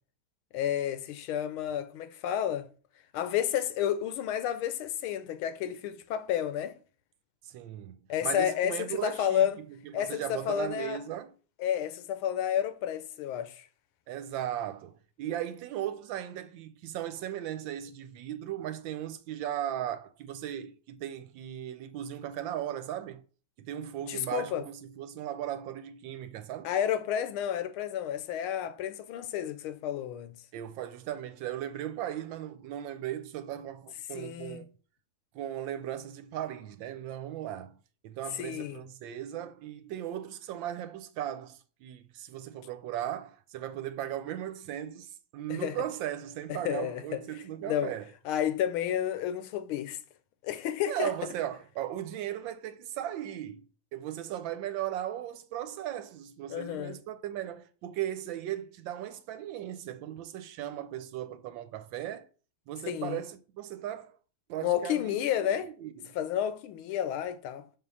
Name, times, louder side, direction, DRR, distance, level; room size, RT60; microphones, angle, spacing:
voice 1, 0.5-2.7 3.1-6.7 8.1-9.6 9.9-11.0 11.6-13.6 24.1-24.6 26.6-30.3 34.1-34.6 38.3-38.8 45.5-45.8 46.5-47.2 47.6-47.9 48.2-50.0 50.4-51.1 56.5-57.0 62.9-63.2 64.6-65.7 66.1-67.6, left 10 dB, 85° left, 1.5 m, -31 dB
voice 2, 7.4-7.9 8.2-11.3 14.1-23.2 23.6-26.7 30.5-34.7 35.3-37.7 38.0-48.1 50.9-62.3 62.7-64.2 64.5-66.1, right 11 dB, 75° right, 1.3 m, -37 dB
6.0 x 3.8 x 5.4 m
omnidirectional pair, 2.3 m